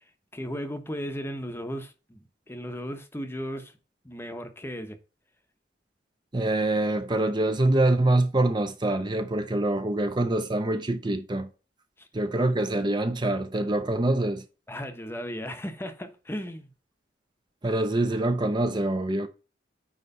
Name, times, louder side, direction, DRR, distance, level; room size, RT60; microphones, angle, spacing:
voice 1, 0.3-3.7 4.0-5.0 12.0-12.1 14.7-16.7, equal, 15° left, 0.9 m, -36 dB
voice 2, 6.3-11.5 12.1-14.4 17.6-19.3, right 2 dB, 25° right, 0.6 m, -25 dB
9.6 x 3.2 x 5.3 m
head